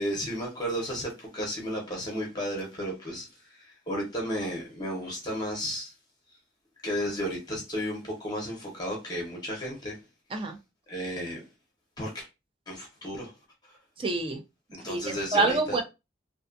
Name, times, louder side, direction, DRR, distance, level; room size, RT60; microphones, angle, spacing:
voice 1, 0.0-5.9 6.8-10.0 10.3-10.4 10.9-11.4 12.0-12.3 12.7-13.3 13.7-13.8 14.7-15.8, equal, 20° left, 0.7 m, -33 dB
voice 2, 14.0-14.4 14.9-15.8, right 3 dB, 25° right, 0.4 m, -27 dB
2.5 x 2.3 x 2.4 m
head